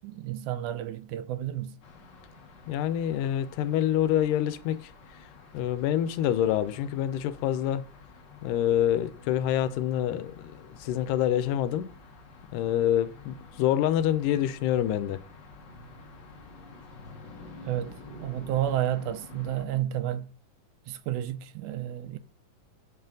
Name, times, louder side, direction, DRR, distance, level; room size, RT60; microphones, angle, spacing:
voice 1, 0.0-1.8 17.6-20.3 20.9-22.2, right 12 dB, 80° right, 1.9 m, -31 dB
sound 1, 1.8-19.7, left 3 dB, 60° left, 1.2 m, -50 dB
voice 2, 2.7-4.9 5.5-7.8 8.4-11.9 12.5-15.2, left 11 dB, 85° left, 2.2 m, -26 dB
7.4 x 5.6 x 3.8 m
omnidirectional pair, 3.7 m